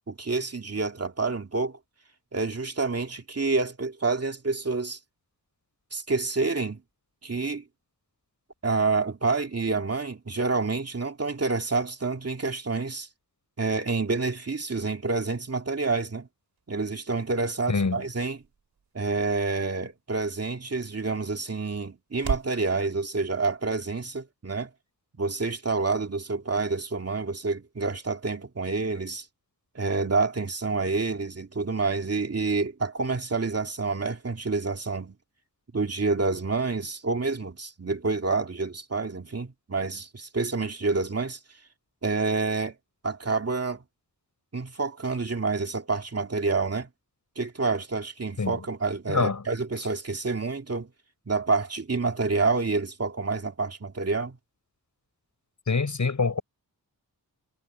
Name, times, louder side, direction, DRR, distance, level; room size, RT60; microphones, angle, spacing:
voice 1, 0.1-1.8 2.3-5.0 5.9-6.8 7.2-7.6 8.6-13.1 13.6-16.3 16.7-18.4 18.9-24.7 25.2-29.3 29.7-35.2 35.7-41.4 42.0-42.8 43.0-43.8 44.5-46.9 47.4-50.9 51.3-54.4, right 3 dB, 40° right, 2.5 m, -28 dB
sound 1, 16.3-22.6, right 6 dB, 90° right, 7.0 m, -41 dB
voice 2, 17.7-18.0 48.4-48.6 49.1-49.4 55.7-56.4, left 4 dB, 50° left, 5.2 m, -25 dB
wide cardioid pair, 80°, 38 cm